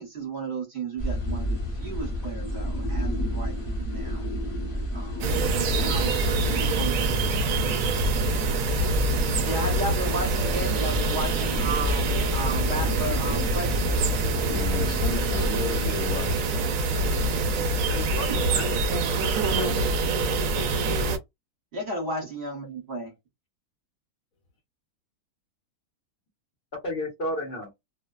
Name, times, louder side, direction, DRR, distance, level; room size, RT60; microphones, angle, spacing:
voice 1, 0.0-4.3 4.9-7.6 7.9-13.8 21.7-23.1, right 1 dB, 50° right, 1.2 m, -35 dB
sound 1, 1.0-15.5, equal, 30° left, 0.7 m, -31 dB
sound 2, 5.2-21.2, right 2 dB, 70° right, 0.9 m, -25 dB
voice 2, 14.4-16.6, left 4 dB, 70° left, 1.1 m, -33 dB
voice 3, 17.9-18.8 19.0-19.2 19.6-19.8 26.8-27.7, left 1 dB, 45° left, 0.9 m, -33 dB
2.6 x 2.1 x 2.2 m
omnidirectional pair, 1.6 m